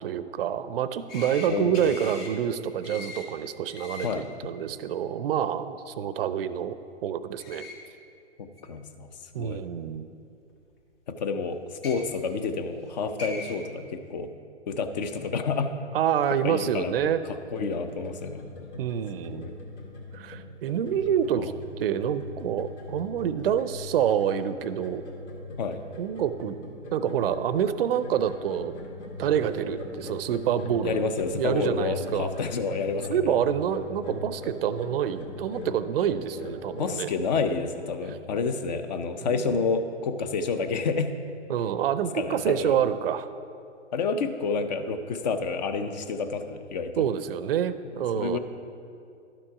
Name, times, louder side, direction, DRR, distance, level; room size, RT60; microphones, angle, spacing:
voice 1, 0.0-6.7 7.0-7.7 9.3-10.1 15.9-17.2 18.8-19.5 20.1-21.5 21.8-25.0 26.0-26.6 26.9-28.7 29.2-31.0 31.3-32.3 33.1-37.1 39.2-39.6 41.5-43.3 47.0-48.4, right 9 dB, 50° right, 13 dB, 0.5 m, -27 dB
sound 1, 1.1-1.5 1.7-2.3 2.8-3.2 3.7-4.1 7.4-7.7 8.6-8.7 9.9-10.0 11.7-11.9 12.8-12.9 13.2-13.5, left 3 dB, 50° left, 1.7 m, -40 dB
voice 2, 1.5-2.0 4.0-4.3 8.6-9.1 9.4-9.6 11.1-14.3 14.7-15.7 16.4-16.9 17.5-18.4 19.3-19.5 21.4-21.5 25.6-25.8 30.8-33.4 36.8-41.1 42.1-42.8 43.9-47.0 48.2-48.4, left 4 dB, 35° left, 9 dB, 0.6 m, -29 dB
sound 2, 17.4-36.9, left 2 dB, 70° left, 1.9 m, -40 dB
12.0 x 6.1 x 4.7 m, 2.5 s
hypercardioid pair, 140°, 36 cm